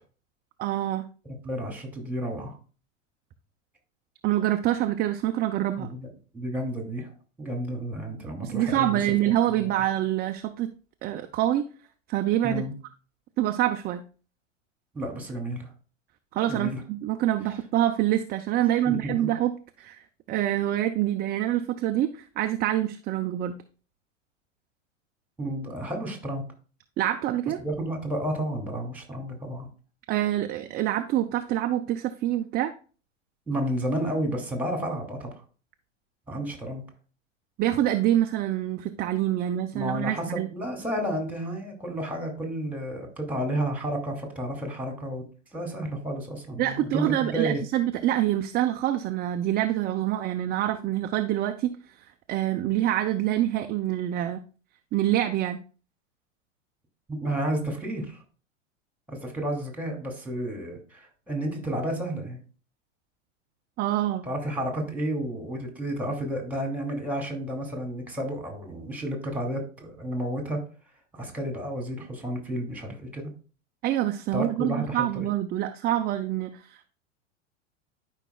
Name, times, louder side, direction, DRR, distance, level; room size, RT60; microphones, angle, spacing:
voice 1, 0.6-1.1 4.2-5.9 8.4-10.7 11.0-11.6 12.1-12.6 13.4-14.0 16.3-19.5 19.8-20.0 20.3-23.6 27.0-27.6 30.1-32.7 37.6-40.5 46.6-51.8 52.3-54.4 54.9-55.6 63.8-64.3 73.8-76.9, right 13 dB, 25° right, 6 dB, 0.5 m, -26 dB
voice 2, 1.2-2.6 5.8-6.1 6.3-7.1 7.4-9.0 9.6-9.7 12.4-12.7 14.9-15.7 16.5-16.8 18.8-19.3 25.4-26.5 27.6-29.7 33.5-35.4 36.3-36.8 39.7-45.2 45.5-47.6 57.1-58.2 59.1-62.4 64.2-70.6 71.1-73.3 74.3-75.3, right 1 dB, 5° right, 2 dB, 2.6 m, -31 dB
12.5 x 5.4 x 2.3 m, 0.37 s
hypercardioid pair, 100°, 38 cm